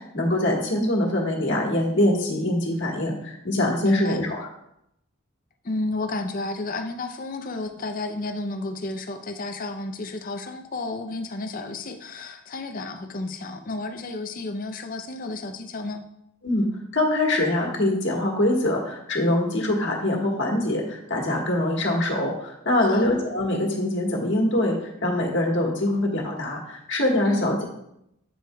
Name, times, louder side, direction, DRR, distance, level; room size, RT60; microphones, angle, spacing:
voice 1, 0.0-4.4 16.4-16.7 16.9-24.8 25.0-27.6, left 1 dB, 60° left, -1 dB, 1.5 m, -23 dB
voice 2, 3.8-4.2 5.6-16.0 22.8-23.1 27.2-27.5, left 2 dB, 40° left, 6 dB, 0.5 m, -32 dB
7.8 x 7.7 x 2.3 m, 0.78 s
head